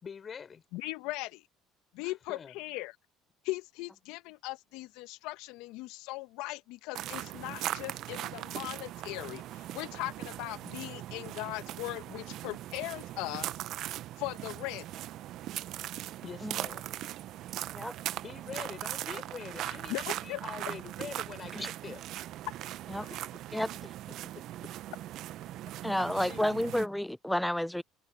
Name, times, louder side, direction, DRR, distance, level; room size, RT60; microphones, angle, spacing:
voice 1, 0.0-0.6 2.0-2.6 16.2-16.9 18.2-22.0 23.1-23.2 23.6-23.9 24.4-24.7 26.2-26.5, left 6 dB, 40° left, 6.3 m, -45 dB
voice 2, 0.7-1.5 1.9-2.9 3.4-13.5 14.2-14.9 19.9-20.4 23.0-23.2, left 20 dB, 70° left, 1.8 m, -39 dB
sound 1, 6.9-26.9, right 14 dB, 60° right, 0.9 m, -40 dB
voice 3, 25.8-27.8, left 1 dB, 5° left, 0.9 m, -30 dB
hypercardioid pair, 70°, 0 cm